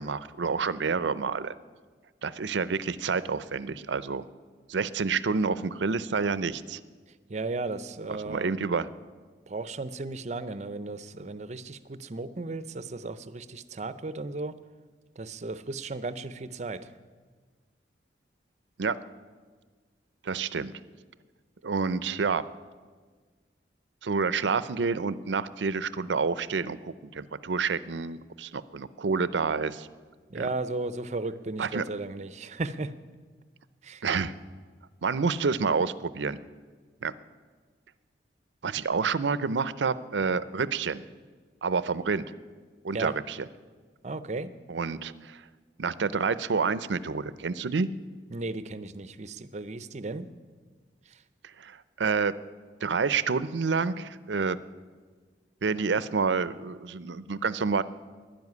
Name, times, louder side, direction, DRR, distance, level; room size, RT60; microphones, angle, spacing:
voice 1, 0.0-1.5 2.2-4.3 4.7-6.8 8.3-8.9 18.8-19.0 20.2-20.7 21.6-22.4 24.0-29.9 30.3-30.5 31.6-31.8 34.0-34.3 35.0-36.4 37.0-37.1 38.6-41.0 41.6-42.3 42.8-43.4 44.7-45.4 45.8-47.9 51.6-52.4 52.8-54.6 55.6-57.8, right 5 dB, 80° right, 16 dB, 0.6 m, -28 dB
voice 2, 7.3-8.6 9.5-14.6 15.2-16.9 30.3-32.9 33.8-34.0 42.9-43.1 44.0-44.5 48.3-50.3 51.1-51.2, right 3 dB, 40° right, 14 dB, 0.6 m, -35 dB
12.5 x 10.5 x 9.5 m, 1.5 s
head